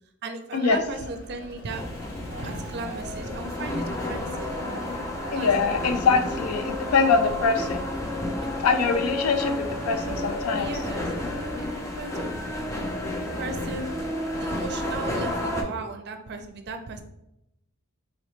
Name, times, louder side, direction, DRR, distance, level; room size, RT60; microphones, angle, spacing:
voice 1, 0.2-1.8 2.4-4.5 5.3-5.5 8.4-8.5 10.5-12.5 12.8-12.9 13.2-13.9 14.4-17.0, right 3 dB, 50° right, 7 dB, 0.5 m, -36 dB
Vehicle, 0.7-7.1, left 1 dB, 55° left, 1.4 m, -45 dB
sound 1, 1.7-15.6, left 1 dB, 15° left, 0.5 m, -31 dB
sound 2, 2.3-7.4, right 2 dB, 25° right, 0.9 m, -42 dB
voice 2, 5.3-7.8 8.6-10.7, left 5 dB, 80° left, 8 dB, 0.5 m, -23 dB
4.0 x 3.0 x 3.1 m, 0.84 s
head